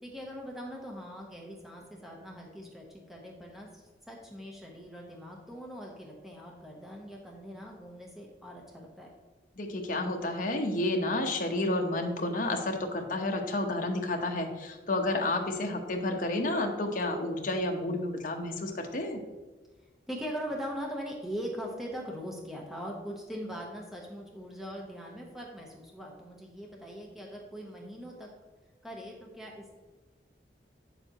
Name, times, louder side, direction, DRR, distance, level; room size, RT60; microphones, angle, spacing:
voice 1, 0.0-9.1 15.3-15.4 20.1-28.3 28.8-29.8, equal, ahead, -1 dB, 0.9 m, -41 dB
voice 2, 9.6-19.2, left 2 dB, 50° left, 2 dB, 1.0 m, -30 dB
8.6 x 6.9 x 3.0 m, 1.3 s
head